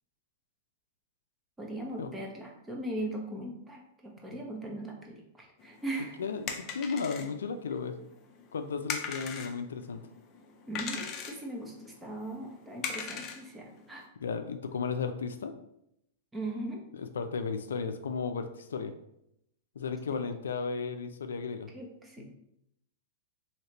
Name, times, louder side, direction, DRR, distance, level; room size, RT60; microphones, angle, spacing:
voice 1, 1.6-6.2 10.7-14.1 16.3-16.8 21.7-22.3, right 1 dB, 10° right, 0 dB, 0.8 m, -39 dB
sound 1, 5.6-14.0, left 6 dB, 35° left, 0.5 m, -41 dB
voice 2, 6.2-8.0 8.5-10.0 14.2-15.5 16.9-18.9 19.8-21.7 22.2-22.3, left 5 dB, 90° left, 8 dB, 0.3 m, -34 dB
3.2 x 2.8 x 2.9 m, 0.78 s
hypercardioid pair, 125°, 0 cm